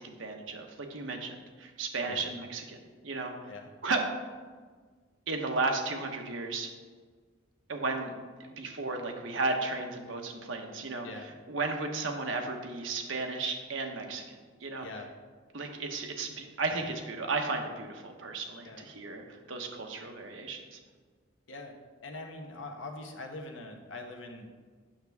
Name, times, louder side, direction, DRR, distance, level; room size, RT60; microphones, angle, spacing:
voice 1, 0.0-2.8 3.0-3.3 3.8-4.0 5.3-6.7 7.7-8.1 8.6-11.1 11.5-14.2 14.6-14.9 15.5-20.8, right 3 dB, 80° right, 3 dB, 1.1 m, -34 dB
voice 2, 11.0-11.3 14.8-15.1 18.6-18.9 21.5-21.8 22.0-24.5, left 2 dB, 80° left, 3 dB, 1.1 m, -43 dB
8.8 x 6.6 x 3.5 m, 1.5 s
head